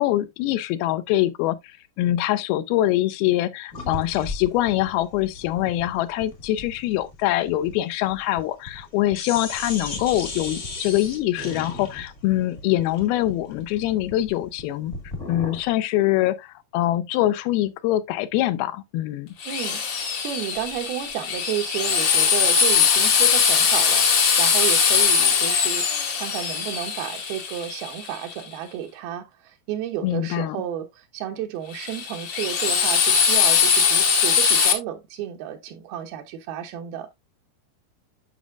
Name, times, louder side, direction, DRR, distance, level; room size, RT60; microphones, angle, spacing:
voice 1, 0.0-14.9 15.3-19.3 30.0-30.6, left 14 dB, 85° left, 2.5 m, -24 dB
sound 1, 3.7-8.9 9.1-15.7, left 2 dB, 45° left, 0.9 m, -36 dB
Drill, 19.4-28.3 31.7-34.7, left 6 dB, 70° left, 1.1 m, -21 dB
voice 2, 19.5-37.1, right 11 dB, 85° right, 3.0 m, -32 dB
9.2 x 6.1 x 2.4 m
omnidirectional pair, 4.3 m